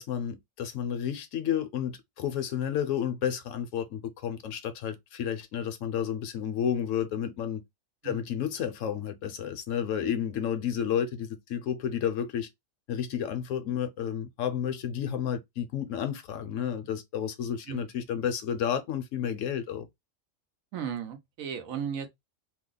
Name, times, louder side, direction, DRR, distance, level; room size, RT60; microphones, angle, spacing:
voice 1, 0.0-7.6 8.0-12.5 12.9-19.9, left 9 dB, 75° left, 0.9 m, -31 dB
voice 2, 20.7-22.1, right 8 dB, 80° right, 1.2 m, -35 dB
2.8 x 2.0 x 3.8 m
omnidirectional pair, 1.4 m